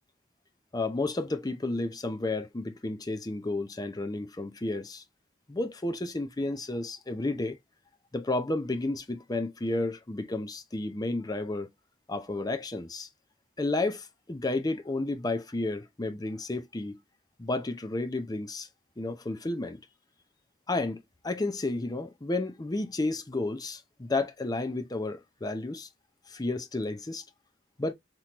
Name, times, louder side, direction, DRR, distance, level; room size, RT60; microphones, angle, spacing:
voice 1, 0.7-5.0 5.5-7.6 8.1-11.7 12.1-13.1 13.6-17.0 17.4-18.7 19.0-19.8 20.7-25.9 26.3-27.2 27.8-27.9, left 2 dB, 20° left, 0.6 m, -32 dB
3.7 x 3.0 x 2.9 m
head